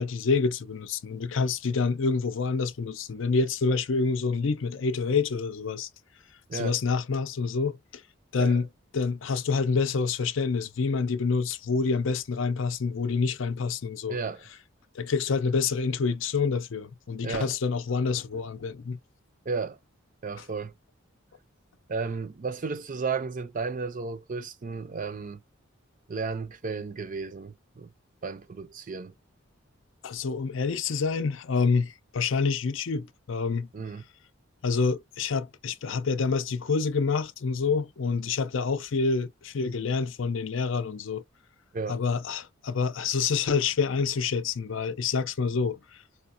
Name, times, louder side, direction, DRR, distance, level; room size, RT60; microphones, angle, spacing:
voice 1, 0.0-5.9 6.5-8.0 8.3-8.7 8.9-14.2 14.9-19.0 30.0-33.7 34.6-41.2 41.9-45.8, left 4 dB, 65° left, 0.5 m, -27 dB
voice 2, 14.1-14.5 17.2-17.5 19.5-19.8 20.2-20.7 21.9-25.4 26.1-27.9 28.2-29.1 33.7-34.0 41.7-42.0, right 4 dB, 40° right, 0.5 m, -33 dB
5.0 x 2.1 x 2.5 m
head